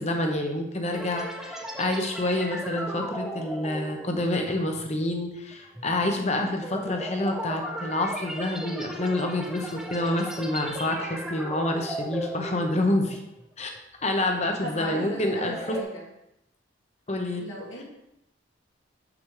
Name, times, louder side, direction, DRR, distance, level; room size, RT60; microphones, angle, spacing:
voice 1, 0.0-13.2 13.6-13.7 14.0-15.8 17.1-17.4, left 1 dB, 35° left, 3 dB, 0.9 m, -28 dB
sound 1, 0.9-13.4 13.8-14.0 14.5-15.8, equal, 5° right, 0.6 m, -37 dB
voice 2, 14.6-16.1 17.4-17.8, left 1 dB, 90° left, -5 dB, 2.3 m, -36 dB
7.7 x 6.1 x 3.3 m, 0.84 s
head